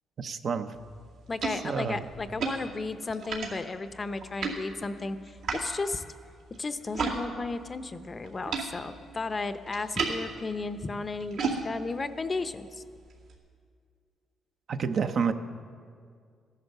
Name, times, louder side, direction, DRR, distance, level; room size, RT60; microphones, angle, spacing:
voice 1, 0.2-0.7 1.6-2.0 14.7-15.3, right 6 dB, 55° right, 7 dB, 0.8 m, -29 dB
sound 1, 0.7-7.2 7.5-13.4, right 4 dB, 75° right, 2.3 m, -37 dB
voice 2, 1.3-6.0 6.6-12.8, left 3 dB, 30° left, 11 dB, 0.7 m, -34 dB
14.5 x 11.0 x 6.7 m, 2.1 s
cardioid pair, 90°, 0 cm